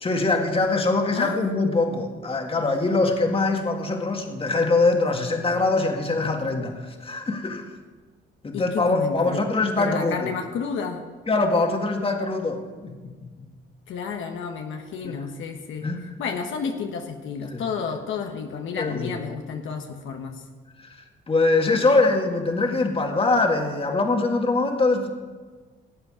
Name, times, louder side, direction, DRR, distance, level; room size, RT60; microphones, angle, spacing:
voice 1, 0.0-7.7 8.4-10.3 11.3-13.5 15.0-15.2 15.8-16.1 17.5-17.6 18.7-19.1 20.8-21.0 21.3-25.1, left 3 dB, 30° left, 3 dB, 1.9 m, -23 dB
voice 2, 1.1-1.5 8.5-9.4 9.8-11.0 13.9-15.9 16.2-20.4, left 6 dB, 80° left, 3 dB, 1.3 m, -31 dB
17.5 x 8.0 x 5.0 m, 1.4 s
cardioid pair, 90°, 20 cm